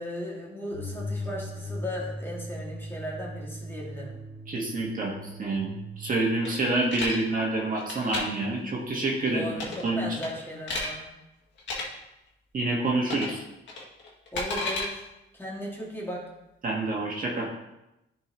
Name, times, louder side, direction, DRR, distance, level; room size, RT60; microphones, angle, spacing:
voice 1, 0.0-4.2 9.2-11.1 14.3-15.1 15.3-16.3, equal, 10° left, -4 dB, 2.4 m, -36 dB
sound 1, 0.7-6.3, equal, 85° right, 1.7 m, -38 dB
voice 2, 4.5-5.1 5.4-5.7 6.0-9.5 9.8-10.0 12.5-13.4 16.6-17.5, right 2 dB, 45° right, -2 dB, 1.6 m, -27 dB
sound 2, 6.4-7.2 7.8-8.2 9.5-9.9 10.2-10.9 11.6-11.8 13.1-13.4 13.7-14.9, left 2 dB, 65° left, 1.8 m, -32 dB
10.0 x 4.6 x 3.1 m, 0.92 s
cardioid pair, 90°, 20 cm